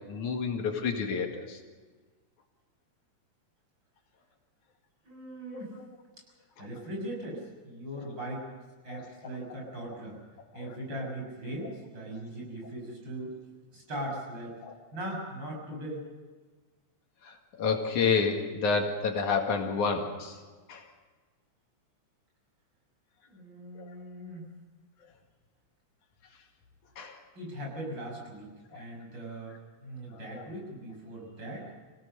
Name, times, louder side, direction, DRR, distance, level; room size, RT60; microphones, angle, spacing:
voice 1, 0.1-1.6 5.5-5.7 6.6-6.7 8.9-9.1 10.6-10.8 14.6-14.7 17.3-20.4 20.7-20.8 23.8-23.9 27.0-27.2 28.7-28.8 30.3-30.4, left 5 dB, 80° left, 2 dB, 3.5 m, -29 dB
voice 2, 5.0-5.8 6.6-8.4 8.8-10.2 10.5-13.3 13.7-14.5 14.9-16.0 23.3-24.5 27.3-29.6 29.8-31.7, right 1 dB, 35° right, -1 dB, 7.3 m, -39 dB
26.5 x 17.0 x 6.8 m, 1.4 s
omnidirectional pair, 3.5 m